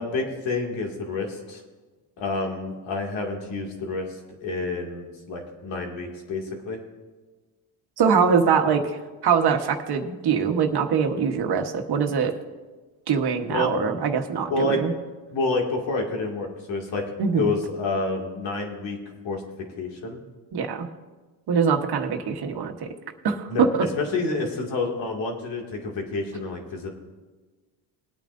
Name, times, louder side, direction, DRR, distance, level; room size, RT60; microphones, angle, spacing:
voice 1, 0.0-1.6 2.2-6.8 13.5-13.7 14.5-14.8 15.3-17.0 17.3-19.0 19.2-19.4 19.8-20.2 23.5-26.9, left 3 dB, 75° left, 1 dB, 2.4 m, -28 dB
voice 2, 8.0-8.8 9.2-12.3 13.1-14.9 17.2-17.5 20.5-20.9 21.5-22.9 23.2-23.7, right 6 dB, 55° right, 4 dB, 1.3 m, -23 dB
21.0 x 9.0 x 2.6 m, 1.3 s
cardioid pair, 90°, 46 cm